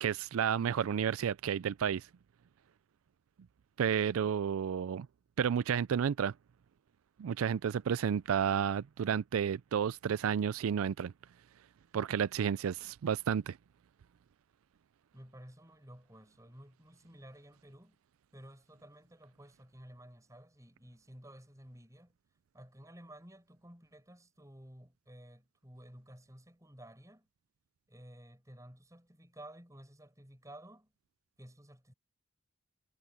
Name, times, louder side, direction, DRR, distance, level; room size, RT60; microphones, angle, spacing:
voice 1, 0.0-2.1 3.8-5.1 5.4-6.3 7.2-11.1 11.9-13.6, right 8 dB, 90° right, 0.4 m, -31 dB
voice 2, 15.1-18.0 18.3-22.2 22.5-27.3 27.9-30.9 31.4-31.9, right 1 dB, 15° right, 6.8 m, -54 dB
head